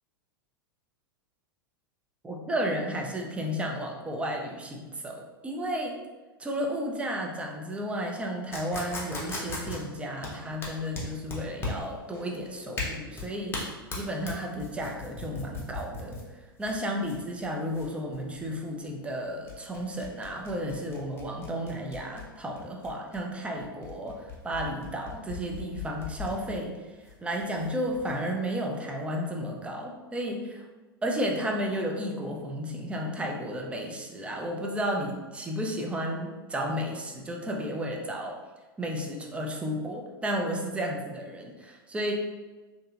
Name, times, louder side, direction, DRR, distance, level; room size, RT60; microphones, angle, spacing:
voice 1, 2.2-6.0 6.4-13.5 14.0-30.6 31.0-38.4 38.8-42.1, equal, 10° right, 0 dB, 0.4 m, -33 dB
sound 1, 8.5-28.1, left 3 dB, 20° left, 0.7 m, -39 dB
2.7 x 2.5 x 2.4 m, 1.2 s
figure-of-eight pair, 95°, 12 cm